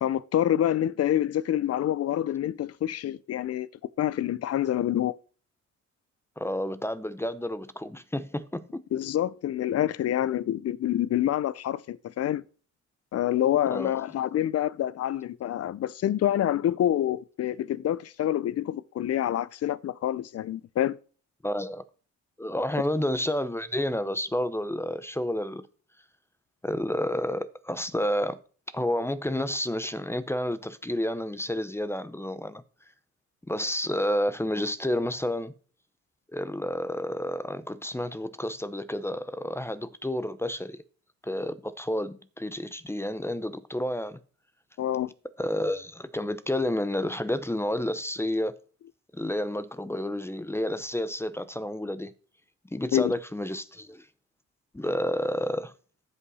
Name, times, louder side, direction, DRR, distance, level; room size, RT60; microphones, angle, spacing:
voice 1, 0.0-3.7 4.0-5.1 8.9-12.4 13.1-21.0 44.8-45.1 52.9-53.1, left 11 dB, 55° left, 0.6 m, -27 dB
voice 2, 6.4-8.8 13.7-13.9 21.4-21.8 22.4-25.7 26.6-28.4 28.7-32.6 33.5-35.5 36.3-40.8 41.2-44.2 45.4-48.5 49.1-52.1 52.7-54.1 54.7-55.7, left 1 dB, 10° left, 0.7 m, -30 dB
15.0 x 5.6 x 4.2 m
cardioid pair, 90°, 30 cm